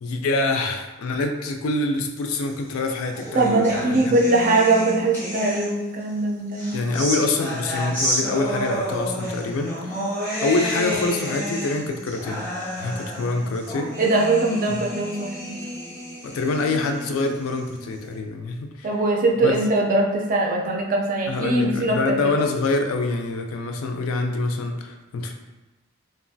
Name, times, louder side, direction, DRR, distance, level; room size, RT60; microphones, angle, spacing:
voice 1, 0.0-4.2 6.7-10.0 10.4-12.4 12.8-14.0 14.7-14.8 16.2-18.9 19.4-19.6 21.3-25.3, left 3 dB, 85° left, 4 dB, 0.4 m, -25 dB
sound 1, 2.6-6.0 6.5-18.0, equal, 10° left, 0.6 m, -31 dB
voice 2, 3.3-6.8 14.0-15.6 18.8-22.4, right 2 dB, 40° right, 1 dB, 0.4 m, -21 dB
3.0 x 2.4 x 2.6 m, 1.1 s
head